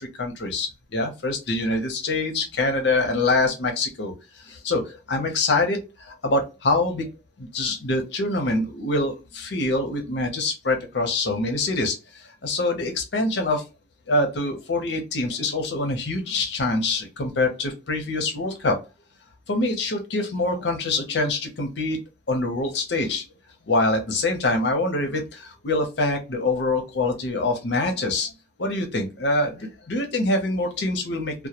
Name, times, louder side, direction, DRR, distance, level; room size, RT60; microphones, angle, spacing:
voice 1, 0.0-4.1 4.5-7.1 7.4-12.0 12.4-13.6 14.1-18.8 19.5-22.0 22.3-23.2 23.7-28.3 28.6-31.3, left 2 dB, 70° left, 3 dB, 0.6 m, -25 dB
2.2 x 2.1 x 2.8 m, 0.27 s
head